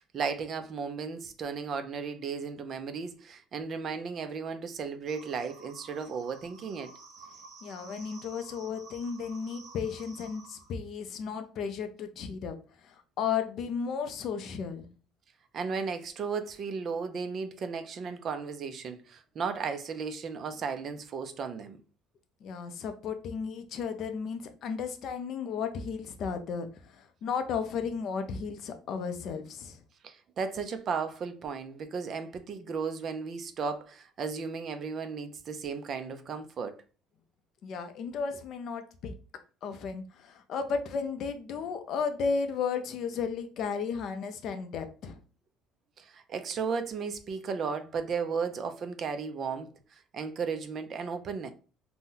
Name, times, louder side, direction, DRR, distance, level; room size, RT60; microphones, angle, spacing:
voice 1, 0.0-6.9 15.5-21.8 30.0-36.7 46.0-49.7 50.1-51.5, right 5 dB, 35° right, 0.3 m, -35 dB
sound 1, 5.1-10.7, right 4 dB, 75° right, 0.8 m, -52 dB
voice 2, 7.6-12.6 12.8-14.9 22.4-29.8 37.6-39.2 39.6-45.2, left 6 dB, 45° left, 0.4 m, -34 dB
2.7 x 2.0 x 3.7 m
cardioid pair, 165°, 0 cm